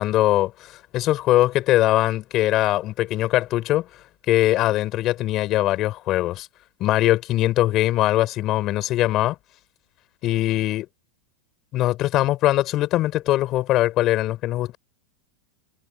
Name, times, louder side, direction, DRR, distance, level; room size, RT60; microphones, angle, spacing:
voice 1, 0.0-3.9 4.3-6.5 6.8-9.3 10.2-10.9 11.7-14.8, left 15 dB, 40° left, 5.1 m, -21 dB
supercardioid pair, 140°, 0 cm